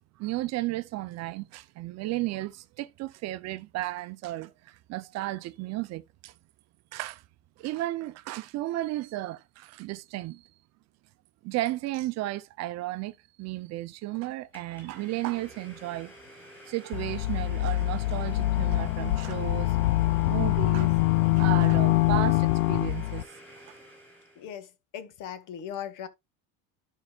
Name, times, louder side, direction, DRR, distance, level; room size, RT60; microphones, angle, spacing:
voice 1, 0.2-6.3 6.9-7.2 7.6-10.4 11.4-16.1 16.7-19.8 20.3-20.9 21.3-23.3, right 17 dB, 40° right, 0.7 m, -34 dB
Domestic sounds home sounds, 14.5-24.5, equal, 5° left, 5.5 m, -50 dB
sound 1, 16.9-23.2, left 18 dB, 75° left, 0.6 m, -24 dB
voice 2, 24.3-26.1, left 9 dB, 50° left, 1.8 m, -39 dB
12.5 x 5.7 x 2.4 m
cardioid pair, 160°, 40 cm